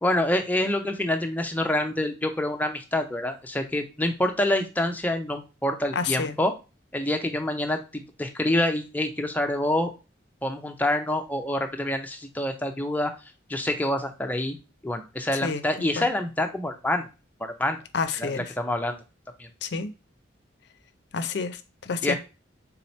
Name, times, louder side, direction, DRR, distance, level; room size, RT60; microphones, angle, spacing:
voice 1, 0.0-6.5 6.9-9.9 10.4-13.1 13.5-14.6 14.8-17.1 17.4-17.8 18.2-19.0 19.4-19.5 22.0-22.1, left 1 dB, 10° left, 0.5 m, -26 dB
voice 2, 5.9-6.4 15.3-15.6 16.0-16.1 17.9-18.4 19.6-19.9 21.1-22.1, left 5 dB, 60° left, 0.5 m, -29 dB
3.9 x 2.8 x 4.2 m
head